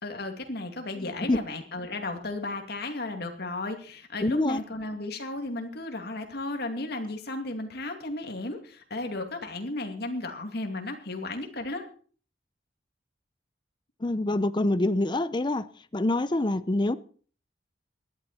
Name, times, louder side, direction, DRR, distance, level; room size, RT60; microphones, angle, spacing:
voice 1, 0.0-11.9, left 2 dB, 60° left, 2.6 m, -34 dB
voice 2, 1.0-1.4 4.2-4.6 14.0-16.9, left 2 dB, 25° left, 0.6 m, -26 dB
18.5 x 12.0 x 4.3 m
head